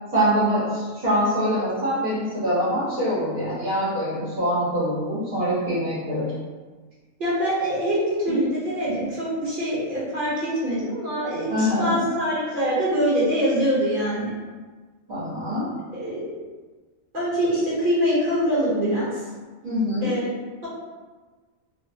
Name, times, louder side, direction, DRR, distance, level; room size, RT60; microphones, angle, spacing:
voice 1, 0.1-6.3 11.5-12.0 15.1-15.7 19.6-20.1, equal, 85° right, -12 dB, 1.8 m, -24 dB
voice 2, 7.2-14.3 15.9-16.4 17.1-19.2 20.0-20.3, equal, 40° right, -9 dB, 1.1 m, -24 dB
3.9 x 2.1 x 2.7 m, 1.3 s
omnidirectional pair, 1.4 m